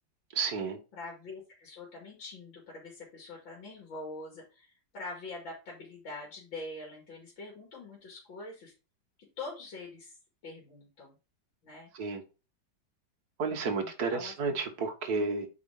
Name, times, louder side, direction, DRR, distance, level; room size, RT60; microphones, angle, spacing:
voice 1, 0.3-0.8 11.9-12.2 13.4-15.5, right 4 dB, 55° right, 1.7 m, -31 dB
voice 2, 0.9-8.7 9.4-10.2 10.4-11.1 11.6-11.9 13.8-14.6, left 2 dB, 85° left, 3.0 m, -44 dB
8.2 x 5.0 x 3.6 m
omnidirectional pair, 2.0 m